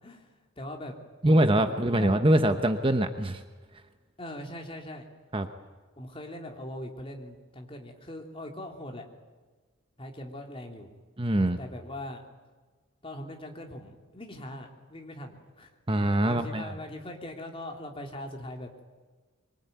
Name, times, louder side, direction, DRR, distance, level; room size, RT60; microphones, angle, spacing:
voice 1, 0.0-2.1 4.2-5.1 6.0-9.1 10.0-10.9 11.6-12.2 13.0-15.7 16.2-18.8, left 1 dB, 25° left, 2 dB, 3.3 m, -41 dB
voice 2, 1.2-3.4 5.3-5.5 11.2-11.6 15.9-16.7, right 1 dB, 25° right, 7 dB, 1.1 m, -23 dB
24.0 x 23.5 x 9.4 m, 1.3 s
head